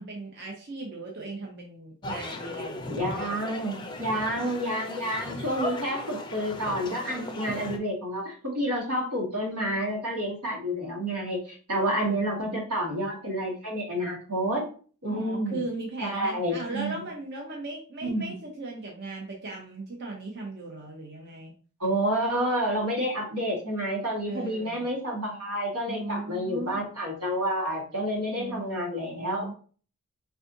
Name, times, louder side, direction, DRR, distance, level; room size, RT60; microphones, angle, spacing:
voice 1, 0.0-3.4 12.0-12.6 15.1-21.5 24.2-24.9 25.9-26.8 28.3-29.5, right 2 dB, 50° right, -1 dB, 0.7 m, -38 dB
sound 1, 2.0-7.8, left 1 dB, 20° left, 0.4 m, -37 dB
voice 2, 2.9-14.7 15.0-15.6 16.0-16.9 18.0-18.3 21.8-29.5, equal, 90° right, -1 dB, 1.6 m, -29 dB
4.1 x 3.4 x 2.7 m, 0.41 s
head